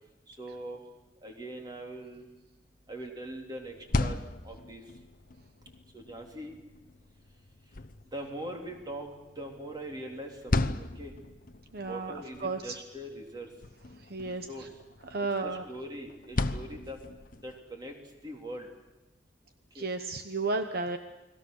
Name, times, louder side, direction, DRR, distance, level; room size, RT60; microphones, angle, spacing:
voice 1, 0.3-0.8 1.2-2.3 2.9-4.2 4.4-4.8 5.9-6.6 8.1-11.1 11.8-13.5 14.5-14.7 15.4-17.0 17.4-18.0 18.2-18.7 19.8-19.9, right 1 dB, 25° right, 1 dB, 3.7 m, -41 dB
sound 1, 3.6-17.6, left 2 dB, 50° left, 0.9 m, -37 dB
voice 2, 11.7-12.1 12.4-12.8 14.1-14.5 15.1-15.6 19.7-21.0, right 3 dB, 60° right, 7 dB, 1.0 m, -32 dB
29.5 x 21.0 x 6.5 m, 1.0 s
head